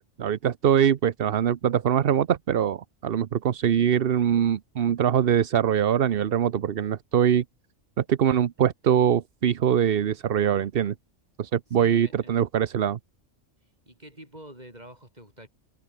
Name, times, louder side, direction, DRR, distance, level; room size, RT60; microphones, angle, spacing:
voice 1, 0.0-7.4 8.0-10.9 11.4-13.0, right 9 dB, 55° right, 0.9 m, -23 dB
voice 2, 11.8-12.3 13.9-15.5, right 1 dB, 30° right, 6.9 m, -45 dB
omnidirectional pair, 1.3 m